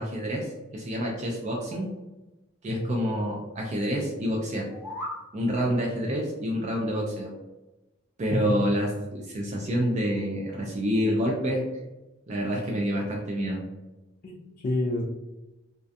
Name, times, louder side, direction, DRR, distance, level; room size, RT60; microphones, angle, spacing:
voice 1, 0.0-1.9 2.6-4.7 5.3-7.3 8.2-11.6 12.3-13.6, equal, 35° right, -1 dB, 0.4 m, -28 dB
voice 2, 2.7-3.0 8.3-8.6 14.2-15.0, left 1 dB, 45° left, -2 dB, 0.3 m, -29 dB
sound 1, 4.5-5.2, left 1 dB, 10° right, 0.8 m, -36 dB
2.4 x 2.2 x 2.5 m, 1.1 s
head